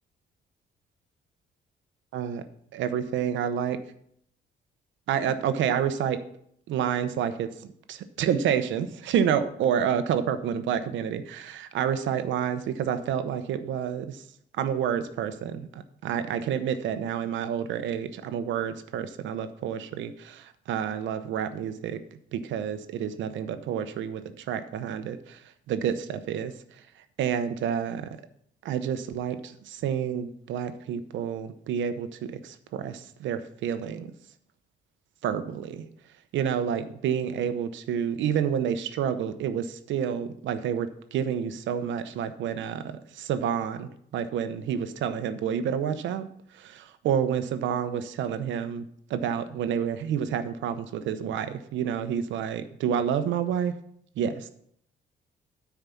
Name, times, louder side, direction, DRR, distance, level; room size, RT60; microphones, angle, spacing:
voice 1, 2.1-2.4 2.7-3.8 5.1-6.2 6.7-7.5 7.9-14.2 14.6-22.0 22.3-25.4 25.7-26.5 27.2-28.1 28.6-34.1 35.2-35.9 36.3-46.3 46.5-53.7 54.2-54.5, right 8 dB, 85° right, 11 dB, 0.8 m, -29 dB
9.2 x 4.8 x 7.0 m, 0.68 s
cardioid pair, 120°, 19 cm